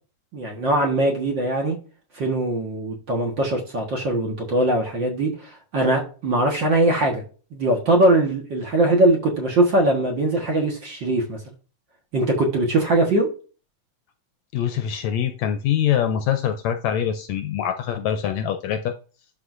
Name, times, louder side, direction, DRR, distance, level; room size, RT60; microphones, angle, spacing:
voice 1, 0.3-1.8 2.1-7.2 7.5-11.4 12.1-13.3, right 1 dB, 45° right, 0 dB, 1.7 m, -21 dB
voice 2, 14.5-18.9, left 9 dB, 75° left, 8 dB, 1.7 m, -24 dB
12.0 x 4.9 x 2.6 m, 0.36 s
omnidirectional pair, 3.6 m